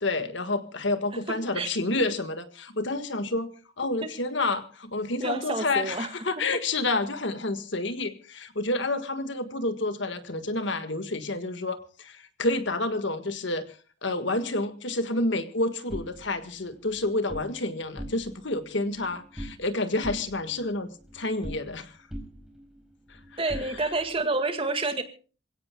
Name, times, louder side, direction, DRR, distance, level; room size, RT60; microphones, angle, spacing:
voice 1, 0.0-22.0 23.1-23.9, left 2 dB, 65° left, 10 dB, 1.7 m, -29 dB
voice 2, 5.2-6.1 23.4-25.0, right 3 dB, 30° right, 8 dB, 1.9 m, -28 dB
sound 1, 15.9-17.5 17.9-18.5 18.8-19.7 20.0-21.8 22.1-24.2, equal, ahead, 4.9 m, -42 dB
27.5 x 17.0 x 2.3 m, 0.37 s
head